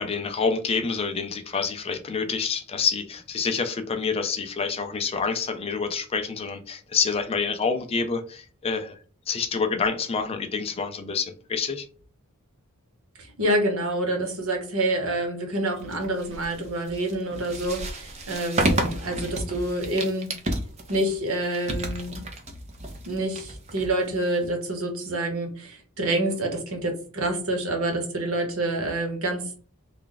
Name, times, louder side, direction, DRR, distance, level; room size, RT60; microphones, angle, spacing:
voice 1, 0.0-9.0 9.3-11.9, left 5 dB, 25° left, 0.4 m, -27 dB
voice 2, 13.2-20.3 20.9-22.2 23.0-29.6, right 1 dB, 65° right, 1.1 m, -27 dB
sound 1, 15.8-24.5, right 1 dB, 30° right, 0.5 m, -31 dB
3.3 x 2.3 x 3.8 m
head